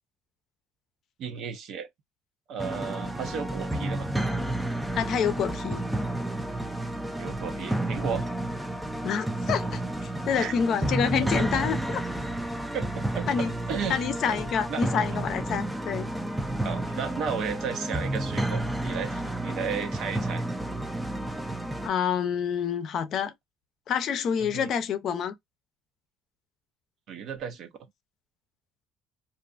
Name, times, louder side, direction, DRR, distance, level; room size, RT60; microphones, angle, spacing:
voice 1, 1.2-1.9 2.5-4.1 7.2-8.3 10.4-10.5 11.2-11.5 12.7-14.4 14.7-14.8 16.6-20.5 24.4-24.7 27.1-27.7, right 7 dB, 60° right, 0.7 m, -34 dB
sound 1, 2.6-21.9, right 1 dB, 5° right, 0.5 m, -31 dB
voice 2, 4.9-5.8 9.0-12.1 13.3-13.5 13.9-16.1 21.8-23.3 23.9-25.3, left 7 dB, 55° left, 0.5 m, -28 dB
2.5 x 2.3 x 2.4 m
cardioid pair, 105°, 0 cm